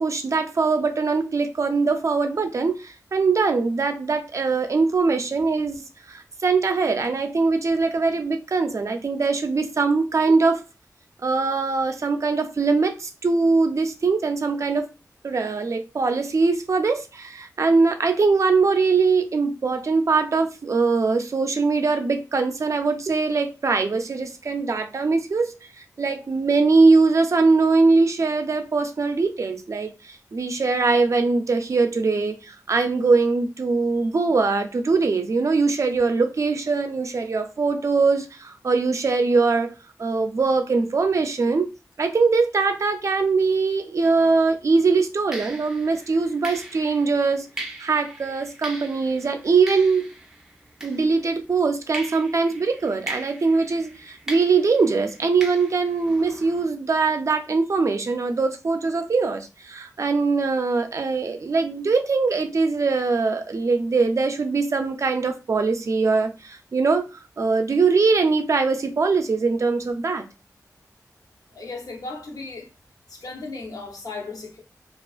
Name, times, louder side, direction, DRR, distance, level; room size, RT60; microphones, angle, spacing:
voice 1, 0.0-5.8 6.1-10.6 11.2-14.9 15.2-25.5 26.0-39.7 40.0-41.7 42.0-47.5 47.8-50.1 50.8-70.2, right 4 dB, 55° right, 0.4 m, -22 dB
sound 1, 44.2-44.4 45.3-51.5 51.9-56.7, right 1 dB, 10° right, 0.7 m, -40 dB
voice 2, 71.5-72.7 73.1-74.6, left 3 dB, 80° left, 0.8 m, -36 dB
2.4 x 2.4 x 2.4 m
wide cardioid pair, 85°, 6 cm